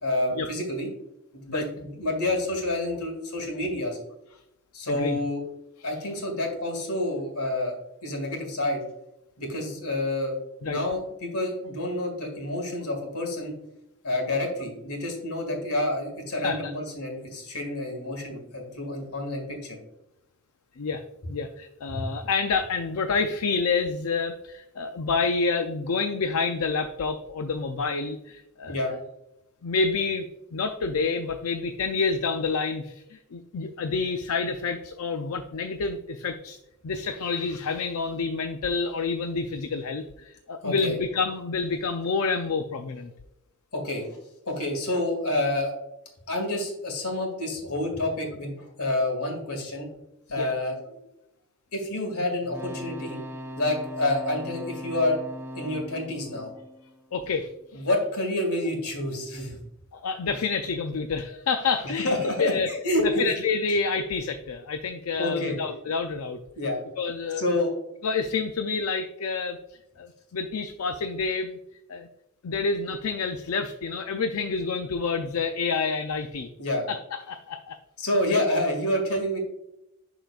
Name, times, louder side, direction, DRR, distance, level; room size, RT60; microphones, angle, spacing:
voice 1, 0.0-0.9 1.3-4.0 4.7-5.4 5.8-7.8 8.0-8.8 9.4-10.4 10.6-13.5 14.0-19.8 21.9-22.0 28.7-28.9 40.6-41.0 43.7-44.2 44.5-45.7 46.3-49.9 50.3-51.0 51.7-53.2 53.6-55.2 55.6-56.5 57.7-59.6 62.0-63.3 65.2-65.6 66.6-66.8 67.4-67.7 76.6-76.9 78.0-79.4, left 1 dB, 90° left, 2 dB, 2.0 m, -28 dB
voice 2, 4.9-5.2 10.6-10.8 16.3-16.7 20.8-21.0 21.3-28.7 29.6-30.3 30.5-36.6 36.8-43.1 50.4-50.5 57.1-57.5 57.7-57.9 59.9-62.7 63.0-66.4 67.0-67.4 68.0-69.6 70.0-71.6 71.9-72.1 72.4-76.5 76.9-77.8 78.3-78.4, left 4 dB, 70° left, 7 dB, 0.5 m, -28 dB
sound 1, 52.4-57.5 60.2-60.4, equal, 10° right, 0.6 m, -40 dB
11.5 x 3.9 x 2.4 m, 0.87 s
head